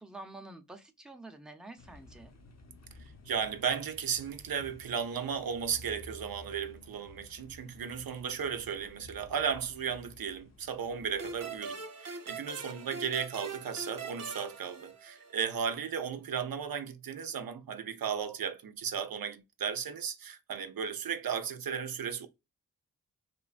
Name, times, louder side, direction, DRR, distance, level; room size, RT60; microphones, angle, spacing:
voice 1, 0.0-2.3, right 2 dB, ahead, 0.6 m, -48 dB
sound 1, 1.8-11.7, left 2 dB, 45° left, 0.7 m, -54 dB
voice 2, 3.0-22.3, right 7 dB, 75° right, 0.5 m, -35 dB
sound 2, 11.2-15.5, right 4 dB, 45° right, 0.8 m, -43 dB
3.1 x 2.1 x 2.4 m
cardioid pair, 50°, 36 cm